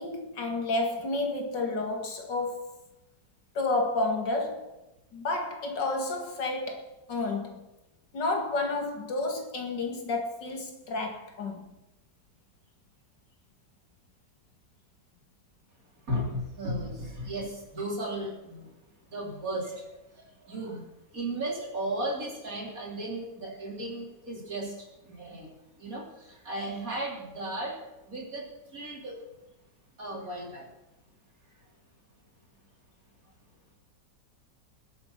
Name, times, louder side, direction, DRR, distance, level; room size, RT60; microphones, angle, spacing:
voice 1, 0.0-2.7 3.5-4.7 5.1-7.6 8.1-11.7, left 2 dB, 75° left, 2.7 m, -31 dB
voice 2, 16.1-18.7 19.1-19.8 20.5-20.8 21.1-24.7 25.1-25.5 25.8-27.7 28.1-28.4 28.7-29.2 30.0-30.6, right 1 dB, 50° right, 4.0 m, -35 dB
21.0 x 7.7 x 5.9 m
omnidirectional pair, 1.9 m